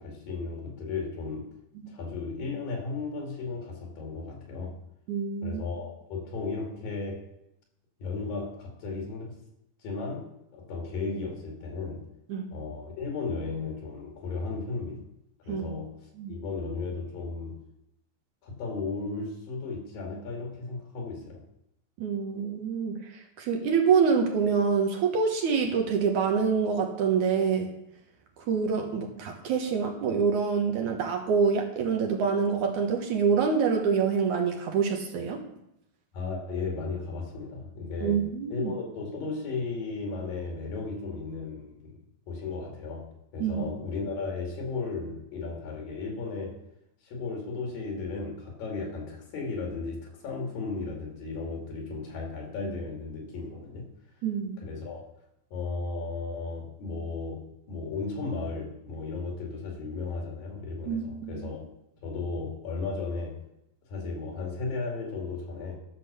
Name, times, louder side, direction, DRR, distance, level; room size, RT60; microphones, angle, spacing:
voice 1, 0.0-1.5 1.9-4.8 5.4-7.3 8.0-9.4 9.8-10.3 10.5-12.1 12.5-15.0 15.5-15.9 16.3-17.6 18.4-21.4 36.1-38.2 38.5-42.0 42.3-46.6 47.0-53.9 54.6-55.0 55.5-61.7 62.0-63.4 63.9-65.8, left 4 dB, 75° left, 0 dB, 4.1 m, -35 dB
voice 2, 5.1-5.6 12.3-12.5 15.5-15.7 16.2-16.3 22.0-22.9 23.4-27.7 28.4-35.4 38.0-38.7 43.4-43.7 54.2-54.6 60.9-61.5, right 6 dB, 65° right, 2 dB, 2.3 m, -26 dB
12.0 x 6.1 x 6.8 m, 0.81 s
omnidirectional pair, 4.1 m